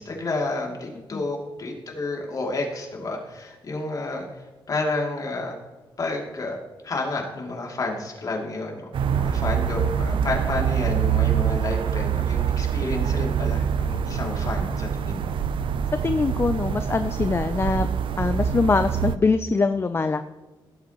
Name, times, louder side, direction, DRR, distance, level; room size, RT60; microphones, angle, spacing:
voice 1, 0.0-4.3 4.7-5.5 6.0-6.6 6.8-8.8 9.1-15.3, left 2 dB, 45° left, 0 dB, 2.7 m, -30 dB
sound 1, 8.9-19.2, right 8 dB, 70° right, 0.5 m, -25 dB
voice 2, 16.0-17.9 18.2-20.2, left 4 dB, 30° left, 9 dB, 0.4 m, -23 dB
16.5 x 8.3 x 3.0 m, 1.2 s
cardioid pair, 115°, 9 cm